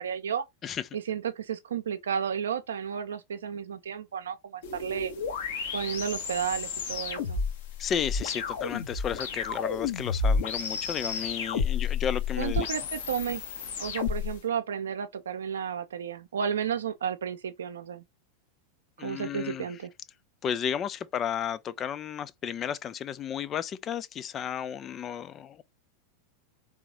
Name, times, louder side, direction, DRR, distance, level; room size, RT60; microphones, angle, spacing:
voice 1, 0.0-0.4 0.9-5.1 5.7-7.4 12.4-13.4 13.8-18.0 19.0-19.9, right 8 dB, 65° right, 0.7 m, -32 dB
sound 1, 4.6-14.4, left 5 dB, 60° left, 1.2 m, -31 dB
voice 2, 7.8-12.7 19.0-19.7 20.4-25.6, left 8 dB, 25° left, 0.4 m, -33 dB
3.8 x 3.5 x 2.9 m
figure-of-eight pair, 90°, 0 cm